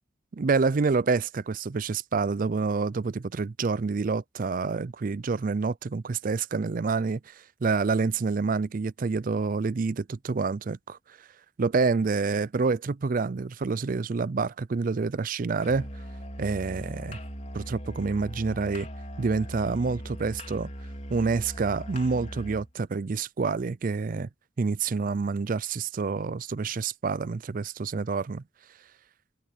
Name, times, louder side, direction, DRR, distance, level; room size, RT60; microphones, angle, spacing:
voice 1, 0.3-11.0 11.6-15.9 16.4-17.2 17.5-18.9 19.2-20.7 21.1-24.3 24.6-28.4, right 4 dB, 45° right, 0.4 m, -28 dB
Musical instrument, 15.6-22.7, equal, 35° left, 4.3 m, -39 dB
open air
head